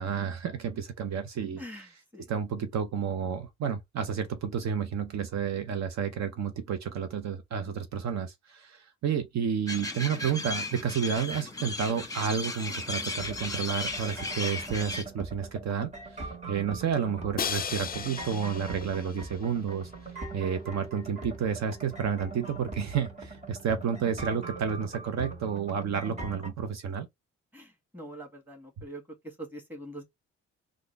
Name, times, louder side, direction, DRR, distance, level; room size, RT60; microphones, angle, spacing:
voice 1, 0.0-2.0 2.3-19.9 20.3-27.1 28.8-28.9, right 7 dB, 60° right, 0.8 m, -31 dB
sound 1, 9.7-15.0, left 2 dB, 10° left, 1.0 m, -35 dB
sound 2, 13.1-26.5, right 3 dB, 25° right, 1.9 m, -42 dB
Crash cymbal, 17.4-19.4, left 7 dB, 30° left, 0.5 m, -35 dB
voice 2, 27.9-29.0 29.4-30.0, right 1 dB, 5° right, 1.7 m, -43 dB
3.7 x 2.4 x 3.3 m
cardioid pair, 90°, 30 cm